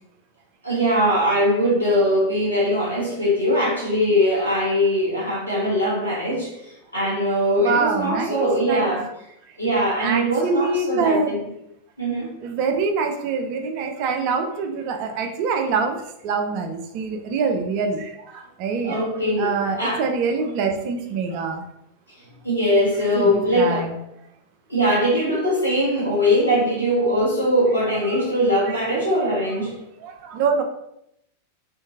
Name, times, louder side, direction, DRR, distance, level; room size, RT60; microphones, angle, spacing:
voice 1, 0.6-6.6 6.9-9.1 9.6-11.4 12.0-12.3 18.8-20.0 22.4-23.9 24.7-29.8, equal, 80° left, -6 dB, 1.0 m, -21 dB
voice 2, 7.6-9.0 10.0-11.3 12.4-19.0 19.4-21.6 23.0-24.0 27.9-28.3 28.6-28.8 29.5-30.6, right 4 dB, 45° right, 4 dB, 0.4 m, -25 dB
2.6 x 2.5 x 2.7 m, 0.77 s
figure-of-eight pair, 90°, 0 cm